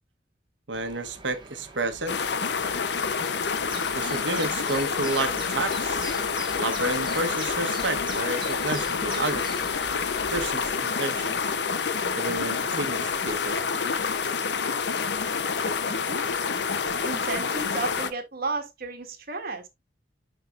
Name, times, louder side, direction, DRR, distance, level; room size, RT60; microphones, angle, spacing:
sound 1, 0.7-10.7, right 3 dB, 25° right, 1.5 m, -43 dB
voice 1, 0.7-2.2 3.9-6.2 6.6-9.6 10.3-11.5 12.1-13.6, right 2 dB, 85° right, 1.2 m, -31 dB
sound 2, 2.1-18.1, left 5 dB, 65° left, 0.7 m, -28 dB
voice 2, 15.8-16.2 17.0-19.7, right 3 dB, 55° right, 1.7 m, -33 dB
10.5 x 4.4 x 2.5 m
head